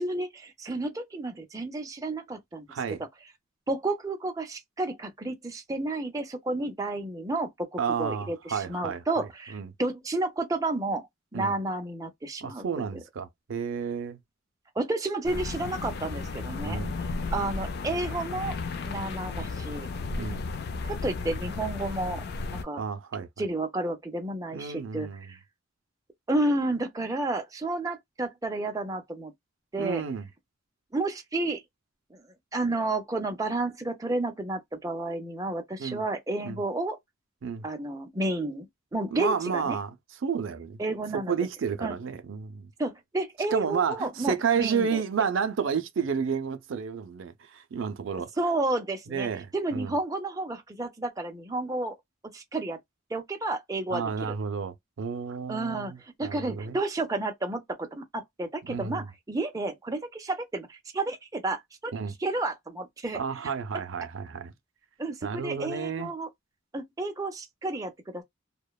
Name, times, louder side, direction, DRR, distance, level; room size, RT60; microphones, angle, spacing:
voice 1, 0.0-3.0 3.7-11.1 11.3-13.0 14.8-16.8 17.3-18.6 18.8-19.9 20.9-22.2 22.6-22.8 23.4-25.4 26.3-29.3 29.7-30.0 30.9-31.6 32.1-32.2 32.5-37.0 37.6-39.8 40.8-41.4 41.8-42.0 42.8-45.0 48.4-52.0 52.3-52.8 53.1-54.3 55.5-55.9 56.2-61.9 62.2-63.2 65.0-66.3 66.7-68.2, right 2 dB, 15° right, 0.5 m, -31 dB
voice 2, 2.7-3.0 7.8-9.3 9.5-9.7 11.3-11.5 12.4-14.2 16.6-17.0 20.2-20.4 22.8-23.3 24.5-25.2 29.8-30.2 35.8-36.0 36.5-36.6 37.4-37.6 39.1-39.9 40.2-40.8 41.1-42.7 43.5-48.3 49.1-50.0 53.9-56.8 58.7-59.1 61.9-62.1 63.1-64.5 65.2-66.1, right 6 dB, 70° right, 0.4 m, -31 dB
sound 1, 15.2-22.6, left 3 dB, 55° left, 0.4 m, -34 dB
2.8 x 2.1 x 2.2 m
head